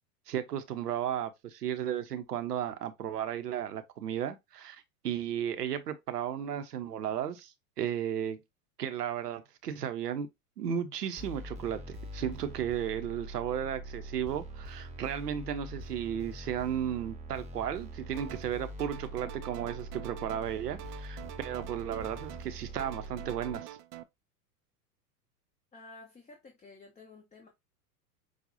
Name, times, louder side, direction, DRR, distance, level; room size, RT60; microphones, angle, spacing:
voice 1, 0.3-8.4 8.8-10.3 10.6-23.8, right 9 dB, 85° right, 0.9 m, -34 dB
sound 1, 11.2-23.6, right 1 dB, 15° right, 1.2 m, -43 dB
sound 2, 18.1-18.5 18.8-20.5 20.8-22.5 22.8-24.0, right 13 dB, 40° right, 0.5 m, -46 dB
voice 2, 25.7-27.5, left 3 dB, 15° left, 1.1 m, -52 dB
6.3 x 2.4 x 2.6 m
hypercardioid pair, 100°, 46 cm